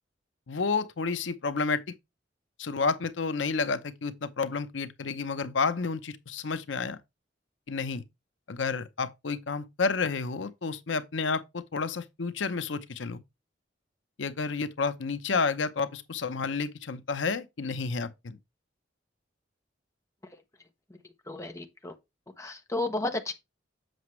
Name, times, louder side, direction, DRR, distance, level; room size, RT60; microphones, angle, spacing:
voice 1, 0.5-1.8 2.6-7.0 7.7-8.0 8.5-13.2 14.2-18.4, left 4 dB, 75° left, 0.7 m, -30 dB
voice 2, 21.3-21.9 22.4-23.3, left 2 dB, 15° left, 0.9 m, -32 dB
7.8 x 5.9 x 3.1 m
head